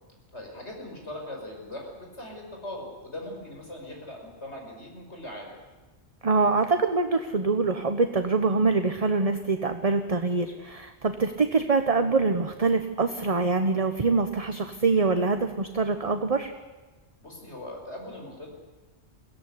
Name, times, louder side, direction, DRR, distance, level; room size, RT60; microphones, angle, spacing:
voice 1, 0.3-5.5 17.2-18.5, left 1 dB, 85° left, 1 dB, 6.2 m, -40 dB
voice 2, 6.2-16.5, right 4 dB, 35° right, 7 dB, 1.1 m, -24 dB
22.5 x 17.0 x 9.8 m, 1.2 s
omnidirectional pair, 1.1 m